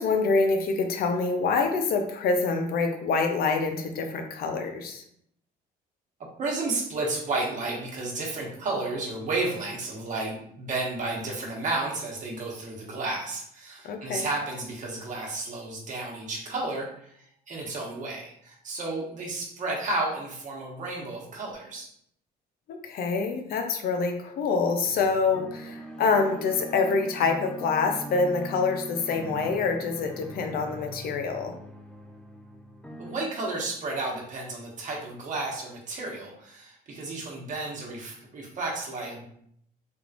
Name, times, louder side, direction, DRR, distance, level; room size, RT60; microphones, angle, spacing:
voice 1, 0.0-5.0 13.8-14.3 22.7-31.5, left 4 dB, 65° left, 4 dB, 0.6 m, -26 dB
voice 2, 6.4-21.9 33.0-39.2, right 2 dB, 50° right, -1 dB, 1.1 m, -32 dB
sound 1, 24.8-33.2, right 1 dB, 5° left, 0.5 m, -42 dB
3.5 x 3.0 x 2.5 m, 0.70 s
cardioid pair, 110°, 17 cm